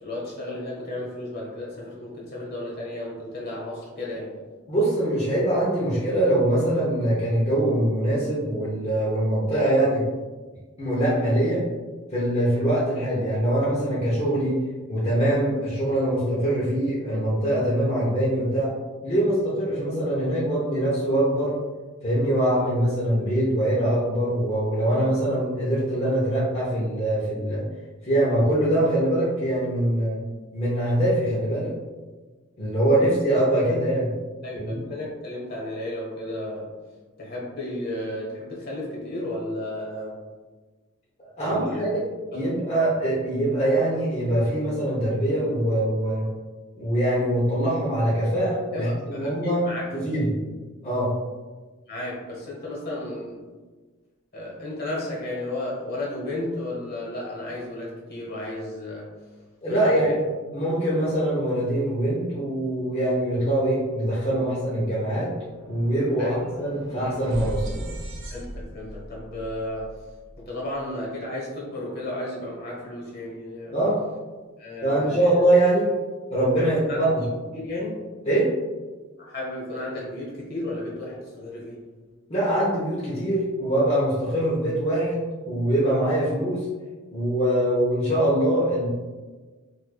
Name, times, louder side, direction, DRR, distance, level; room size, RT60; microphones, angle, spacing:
voice 1, 0.0-4.4 34.4-36.7 37.2-40.2 41.4-41.8 42.3-42.4 48.7-49.8 51.9-53.4 54.3-59.1 59.7-60.1 66.2-66.4 68.3-69.9 70.4-73.8 74.6-75.2 76.6-77.1 77.5-78.0 79.2-81.8, left 1 dB, 50° left, -4 dB, 1.1 m, -33 dB
voice 2, 4.7-10.0 10.8-11.7 12.1-14.6 14.9-18.7 19.0-21.6 22.0-27.6 28.0-30.2 30.5-31.7 32.6-34.1 34.5-34.8 41.2-42.0 42.3-46.3 46.7-49.6 49.9-50.3 50.8-51.1 59.6-60.2 60.5-65.3 65.6-67.9 73.7-74.0 74.8-75.9 76.3-77.2 78.3-78.5 82.3-86.7 87.1-88.9, right 1 dB, 30° left, -8 dB, 0.7 m, -23 dB
sound 1, 64.6-70.8, right 1 dB, 60° right, 0.6 m, -38 dB
4.5 x 2.5 x 2.3 m, 1.3 s
head